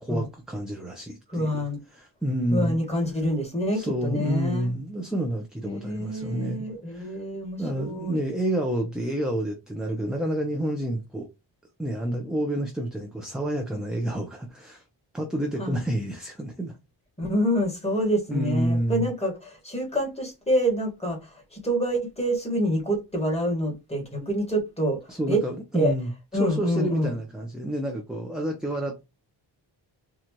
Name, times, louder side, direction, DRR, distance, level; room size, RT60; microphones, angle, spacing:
voice 1, 0.0-1.6 1.9-2.8 3.7-7.2 7.6-11.3 11.8-14.8 15.1-16.8 18.3-19.1 25.1-26.1 26.4-29.0, right 1 dB, ahead, 0.7 m, -29 dB
voice 2, 1.3-1.8 2.5-4.7 5.6-8.2 15.6-15.8 17.2-25.4 25.7-25.9 26.3-27.1, equal, 15° left, 1.7 m, -27 dB
4.4 x 2.4 x 2.9 m
wide cardioid pair, 115°, 43 cm